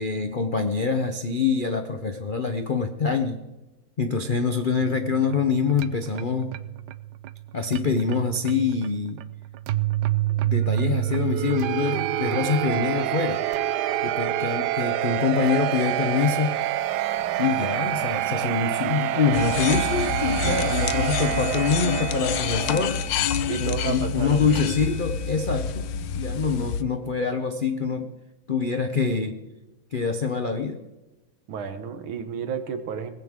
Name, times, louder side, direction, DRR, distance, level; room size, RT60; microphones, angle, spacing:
voice 1, 0.0-3.4 4.0-6.6 7.5-9.2 10.4-13.4 14.0-16.5 17.4-23.1 23.6-25.9 26.1-28.1 28.5-29.4 29.9-30.8, left 5 dB, 90° left, 7 dB, 0.4 m, -25 dB
sound 1, 4.8-22.9, right 13 dB, 70° right, 1.0 m, -27 dB
sound 2, 19.3-26.8, left 6 dB, 70° left, 1.3 m, -28 dB
voice 2, 20.4-20.9 23.5-24.7 31.5-33.1, right 7 dB, 90° right, 9 dB, 2.0 m, -32 dB
18.5 x 15.5 x 3.7 m, 1.1 s
omnidirectional pair, 2.2 m